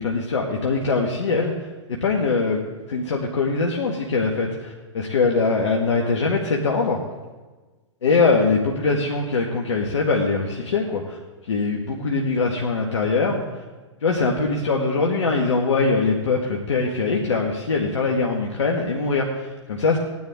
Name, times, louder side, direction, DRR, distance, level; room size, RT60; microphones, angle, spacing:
voice 1, 0.0-2.6 2.9-7.0 8.0-11.2 11.4-13.6 14.0-20.0, left 4 dB, 75° left, 0 dB, 1.7 m, -22 dB
18.0 x 10.5 x 3.7 m, 1.2 s
hypercardioid pair, 115°, 15 cm